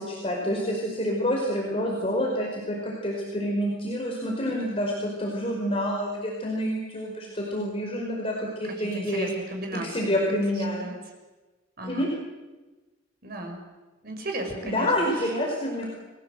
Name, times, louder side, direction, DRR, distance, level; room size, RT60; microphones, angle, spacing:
voice 1, 0.0-9.3 9.8-10.9 11.8-12.1 14.6-15.9, equal, 30° left, -2 dB, 5.0 m, -28 dB
voice 2, 8.8-10.1 10.8-11.0 11.8-12.1 13.2-13.6 14.0-15.3, right 1 dB, 50° right, 3 dB, 6.5 m, -35 dB
30.0 x 21.0 x 7.8 m, 1.2 s
head